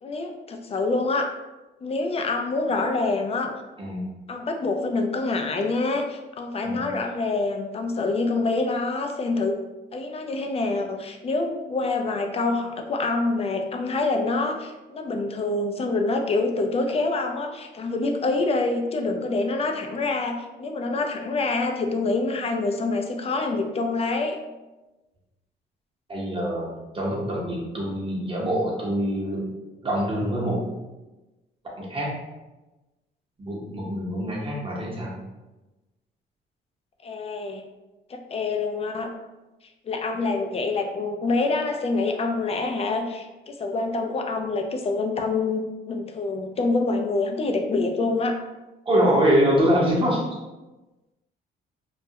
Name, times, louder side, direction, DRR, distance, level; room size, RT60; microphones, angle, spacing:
voice 1, 0.0-1.3 1.8-3.5 4.3-9.6 9.9-24.4 37.0-37.6 38.1-39.1 39.8-48.4, left 3 dB, 30° left, 4 dB, 0.4 m, -26 dB
voice 2, 26.1-26.7 26.9-29.4 29.8-30.6 31.8-32.1 33.4-35.1 48.8-50.2, equal, 25° right, -3 dB, 0.8 m, -24 dB
2.3 x 2.1 x 2.7 m, 1.1 s
cardioid pair, 90°, 20 cm